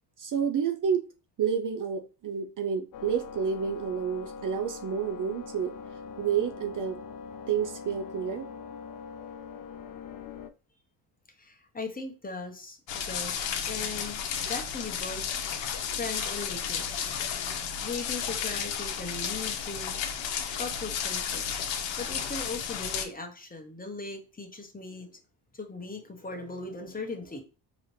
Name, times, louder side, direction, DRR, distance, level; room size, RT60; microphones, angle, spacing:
voice 1, 0.2-1.0 1.4-5.7 6.2-7.0 7.5-8.5, right 7 dB, 40° right, 0.5 m, -29 dB
sound 1, 2.9-10.5, left 5 dB, 45° left, 0.5 m, -42 dB
voice 2, 11.4-12.8 13.1-15.4 15.8-17.1 17.8-20.0 20.6-21.6 22.0-25.2 25.5-27.4, left 3 dB, 20° left, 1.0 m, -39 dB
sound 2, 12.9-23.1, left 7 dB, 65° left, 0.9 m, -33 dB
3.9 x 3.0 x 3.1 m
supercardioid pair, 75°, 48 cm